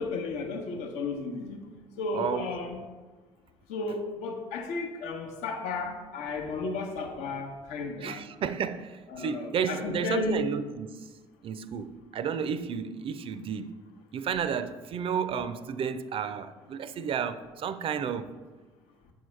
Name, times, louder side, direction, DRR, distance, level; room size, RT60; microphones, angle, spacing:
voice 1, 0.0-1.6 2.0-2.8 3.7-8.2 9.1-10.5, left 3 dB, 65° left, 0.8 m, -33 dB
voice 2, 2.1-2.5 8.0-11.1 11.4-13.8 14.1-18.3, right 7 dB, 45° right, 0.4 m, -32 dB
7.3 x 4.7 x 3.2 m
hypercardioid pair, 55°, 13 cm